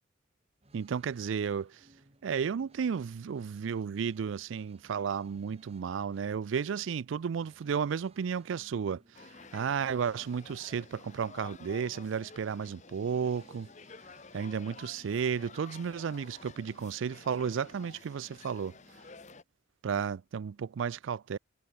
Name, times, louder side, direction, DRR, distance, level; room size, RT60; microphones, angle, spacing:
sound 1, 0.6-19.4, right 1 dB, 35° right, 4.4 m, -64 dB
voice 1, 0.7-1.8 2.2-9.0 9.5-13.7 14.3-18.7 19.8-21.4, right 7 dB, 90° right, 0.4 m, -33 dB
sound 2, 9.1-19.4, left 4 dB, 40° left, 1.2 m, -52 dB
head